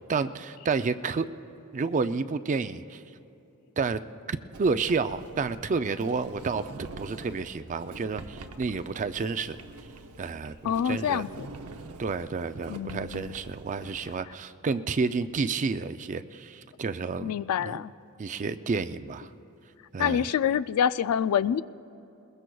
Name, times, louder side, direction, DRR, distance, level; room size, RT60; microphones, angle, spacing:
voice 1, 0.1-1.3 1.7-3.0 3.8-4.0 4.3-6.6 7.0-9.6 10.2-11.2 12.0-17.3 17.6-17.8 18.2-19.3 19.9-20.3, right 4 dB, 35° right, 12 dB, 0.4 m, -30 dB
Sliding door, 4.5-14.2, right 3 dB, 85° right, 0.7 m, -45 dB
voice 2, 10.6-11.5 12.7-13.3 17.2-17.9 20.0-21.6, left 8 dB, 75° left, 17 dB, 0.3 m, -26 dB
22.0 x 21.5 x 2.3 m, 2.9 s
head